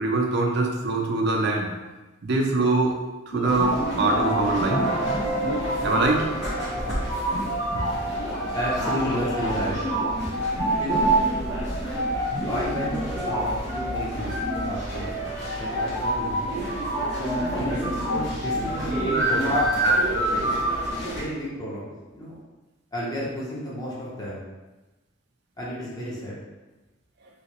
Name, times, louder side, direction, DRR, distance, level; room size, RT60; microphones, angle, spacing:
voice 1, 0.0-1.7 2.2-2.9 3.3-4.8 5.8-6.3 6.9-7.0 7.9-8.0 10.2-10.3, right 3 dB, 55° right, 1 dB, 0.5 m, -23 dB
sound 1, 3.3-15.0, right 1 dB, 85° left, 1.5 m, -32 dB
sound 2, 3.4-21.2, right 1 dB, 55° left, 1.0 m, -27 dB
voice 2, 8.5-9.8 10.8-11.1 12.5-15.3 15.5-16.5 17.4-19.6 20.9-22.4 22.9-24.4 25.6-26.4, equal, 20° left, -7 dB, 0.8 m, -32 dB
3.1 x 2.8 x 2.9 m, 1.1 s
head